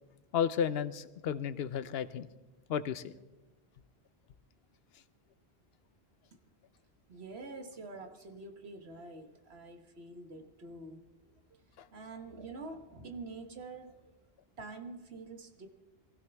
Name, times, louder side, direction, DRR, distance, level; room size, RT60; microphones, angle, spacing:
voice 1, 0.3-2.3 2.7-3.1 11.8-11.9, left 8 dB, 75° left, 14 dB, 0.9 m, -33 dB
voice 2, 7.1-11.0 11.5-11.6 11.9-14.0 14.6-15.7, right 3 dB, 85° right, 5 dB, 1.6 m, -46 dB
23.0 x 16.5 x 3.5 m, 1.0 s
omnidirectional pair, 1.0 m